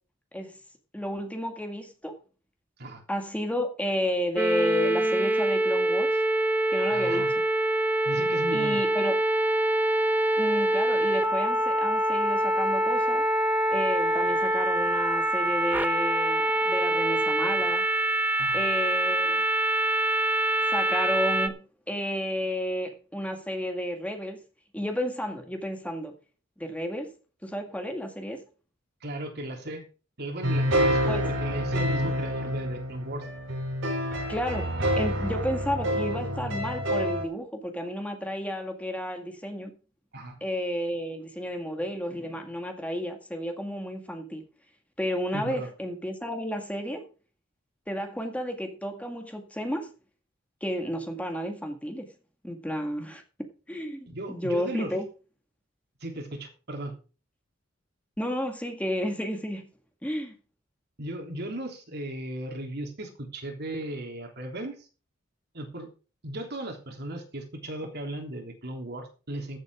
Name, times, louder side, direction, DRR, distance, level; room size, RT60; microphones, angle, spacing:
voice 1, 0.9-2.2 3.1-6.2 6.7-7.3 8.5-9.2 10.4-13.2 13.7-17.8 18.5-19.4 20.7-24.4 24.7-26.1 26.6-27.1 27.4-28.4 31.1-31.2 34.3-39.7 40.4-44.4 45.0-47.1 47.9-49.9 50.6-52.1 52.4-55.0 58.2-59.7 60.0-60.3, equal, 5° left, 1.9 m, -32 dB
sound 1, 4.4-21.5, right 1 dB, 10° right, 0.8 m, -25 dB
voice 2, 6.9-7.3 8.0-8.8 18.4-18.6 29.0-29.8 30.2-33.3 40.1-40.4 45.3-45.7 54.1-54.9 56.0-57.0 61.0-64.9 65.5-65.9 66.2-69.6, right 1 dB, 55° right, 3.4 m, -36 dB
sound 2, 30.4-37.2, equal, 75° right, 3.7 m, -28 dB
14.5 x 8.3 x 4.9 m
head